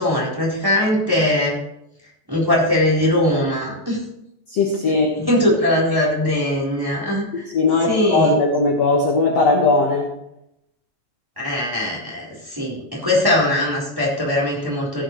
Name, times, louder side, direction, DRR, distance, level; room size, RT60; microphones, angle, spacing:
voice 1, 0.0-1.6 2.3-4.0 4.9-5.0 5.2-7.4 7.9-8.4 11.4-15.0, left 1 dB, 5° right, -5 dB, 3.1 m, -20 dB
voice 2, 4.5-5.1 7.5-10.1, left 3 dB, 60° left, 0 dB, 1.7 m, -18 dB
17.0 x 9.2 x 3.2 m, 0.82 s
omnidirectional pair, 5.3 m